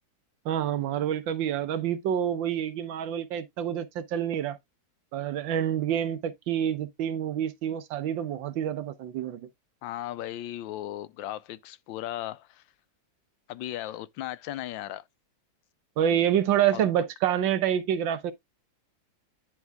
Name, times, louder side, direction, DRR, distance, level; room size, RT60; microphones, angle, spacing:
voice 1, 0.4-4.6 5.1-9.5 16.0-18.3, right 10 dB, 80° right, 1.5 m, -27 dB
voice 2, 9.8-12.6 13.5-15.0 16.7-16.8, left 13 dB, 90° left, 1.3 m, -36 dB
10.5 x 3.6 x 3.4 m
omnidirectional pair, 2.0 m